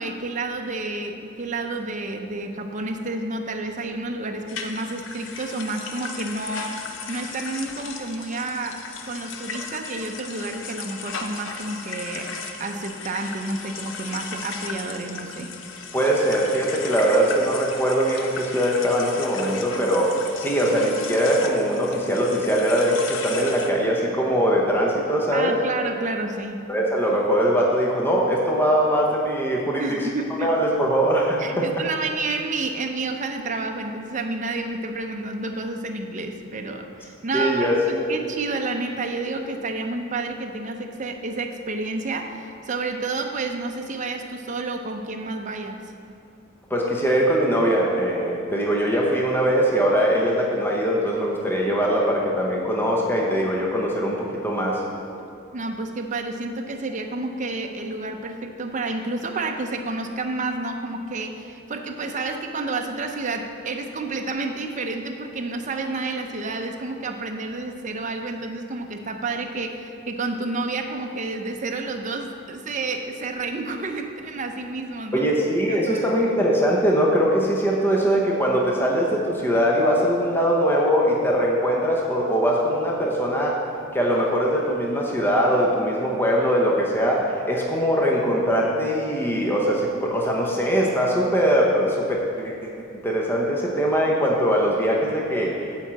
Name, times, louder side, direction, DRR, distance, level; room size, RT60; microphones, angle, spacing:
voice 1, 0.0-12.3 12.6-15.5 25.3-26.6 29.8-30.5 31.4-45.8 55.5-75.3 75.7-76.1, right 3 dB, 40° right, 4 dB, 0.6 m, -30 dB
sound 1, 4.5-23.7, left 5 dB, 65° left, 0.7 m, -36 dB
voice 2, 15.9-25.6 26.7-29.8 30.4-31.6 37.3-38.0 46.7-54.8 75.1-83.6 83.9-95.8, equal, 10° left, -3 dB, 0.8 m, -21 dB
8.6 x 4.5 x 7.4 m, 2.5 s
head